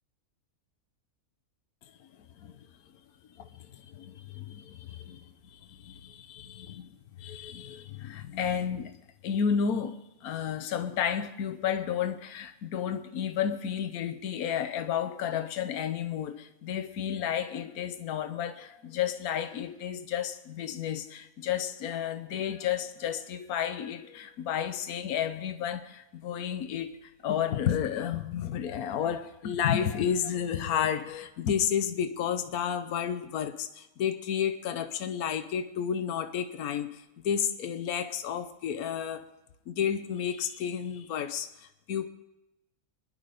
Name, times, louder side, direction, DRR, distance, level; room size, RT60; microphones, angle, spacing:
voice 1, 2.4-2.7 3.3-6.9 7.2-9.0 9.2-39.3 39.7-42.1, left 8 dB, 75° left, 1.4 m, -32 dB
25.0 x 10.5 x 5.1 m
omnidirectional pair, 1.6 m